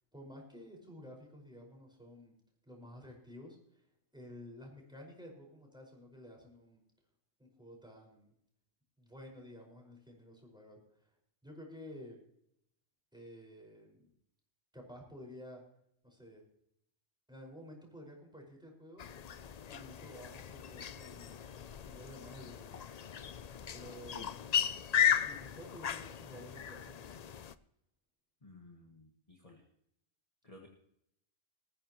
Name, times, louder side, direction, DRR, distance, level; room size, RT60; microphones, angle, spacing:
voice 1, 0.1-2.4 2.7-3.8 4.1-6.8 7.4-8.3 9.0-11.1 11.4-12.2 13.1-14.1 14.7-15.6 16.0-16.4 17.3-19.0 19.7-21.5 21.8-22.8 23.7-24.2 25.0-27.0, left 1 dB, 5° right, 0 dB, 5.3 m, -52 dB
sound 1, 19.0-27.5, left 9 dB, 50° left, 0.5 m, -36 dB
voice 2, 28.4-29.6 30.4-30.7, left 2 dB, 30° left, 0 dB, 1.7 m, -54 dB
19.5 x 15.0 x 3.1 m, 0.73 s
omnidirectional pair, 1.2 m